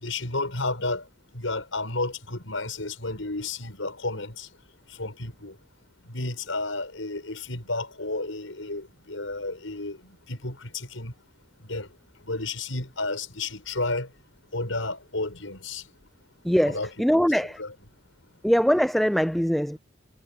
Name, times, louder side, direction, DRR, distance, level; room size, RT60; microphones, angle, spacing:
voice 1, 0.0-1.0 1.3-4.5 5.0-5.5 6.1-11.1 11.6-11.9 12.3-14.1 14.5-15.8 16.7-17.7, left 2 dB, 90° left, 6.3 m, -32 dB
voice 2, 16.4-17.6 18.4-19.8, equal, ahead, 0.4 m, -22 dB
head